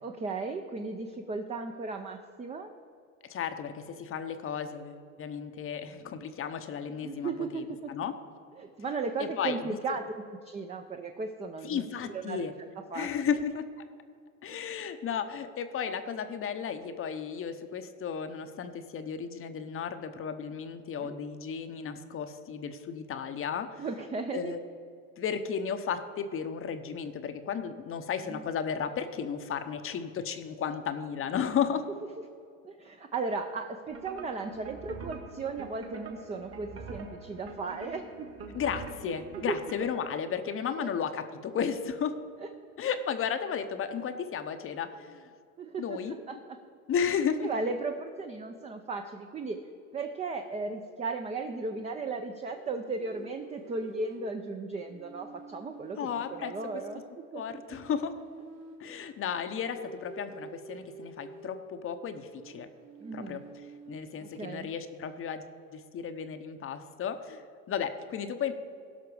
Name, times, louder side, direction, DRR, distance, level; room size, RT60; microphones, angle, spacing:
voice 1, 0.0-2.7 7.0-7.9 8.6-10.0 10.4-12.5 12.9-13.1 21.0-21.2 23.8-24.5 28.3-28.4 32.6-38.3 39.0-39.1 39.5-39.6 40.8-40.9 42.4-42.5 45.6-46.6 47.4-49.6 49.9-57.0 57.3-57.6 63.0-63.4 64.2-64.7, right 4 dB, 15° right, 5 dB, 0.6 m, -36 dB
voice 2, 3.2-8.1 9.2-9.8 11.6-12.5 12.9-13.9 14.4-23.8 24.3-24.6 25.2-31.8 38.5-42.2 42.8-45.3 45.8-46.2 46.9-47.5 56.0-56.8 57.3-58.2 58.8-62.7 63.1-65.4 65.7-68.5, left 7 dB, 35° left, 9 dB, 0.8 m, -34 dB
sound 1, 33.9-40.2, right 4 dB, 35° right, 1.5 m, -45 dB
sound 2, 52.5-54.3 54.8-57.1 57.7-58.9 59.4-61.7 62.3-64.0, right 4 dB, 70° right, 2.3 m, -49 dB
16.5 x 5.9 x 4.9 m, 2.3 s
hypercardioid pair, 95°, 40 cm